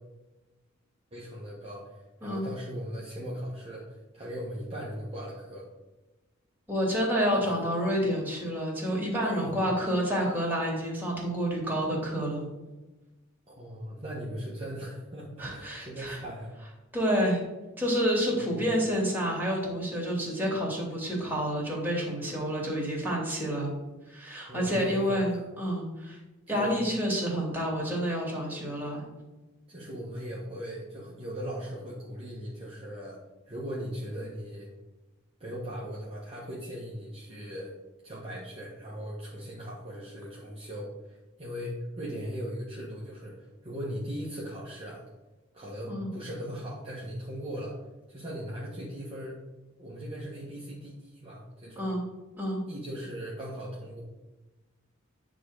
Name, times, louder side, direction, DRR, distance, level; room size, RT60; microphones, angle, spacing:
voice 1, 1.1-5.6 7.4-7.7 9.2-9.5 13.5-16.5 18.3-18.6 24.5-25.4 26.5-26.8 29.7-33.2 33.4-34.7 35.4-37.7 38.0-45.0 45.5-47.8 48.1-49.4 49.8-51.9 52.7-54.0, equal, 30° right, -6 dB, 1.5 m, -39 dB
voice 2, 6.7-12.5 15.4-16.2 16.9-17.4 17.8-23.7 24.1-26.2 26.5-29.0 45.9-46.1 51.8-52.0 52.4-52.6, equal, 10° right, -3 dB, 2.6 m, -29 dB
9.5 x 3.8 x 6.5 m, 1.1 s
head